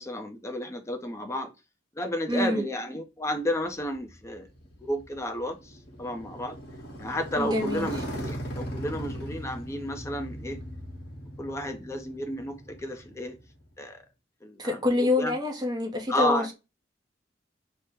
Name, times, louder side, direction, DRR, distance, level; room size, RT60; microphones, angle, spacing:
voice 1, 0.0-1.5 2.0-4.5 4.8-6.6 7.0-10.6 11.4-13.4 13.8-14.0 14.4-15.3 16.1-16.5, left 1 dB, 15° left, 0.5 m, -32 dB
voice 2, 2.3-2.6 7.4-7.9 14.6-16.5, left 2 dB, 20° right, 0.7 m, -26 dB
Motorcycle, 3.8-13.7, equal, 60° left, 1.1 m, -39 dB
2.8 x 2.1 x 3.4 m
head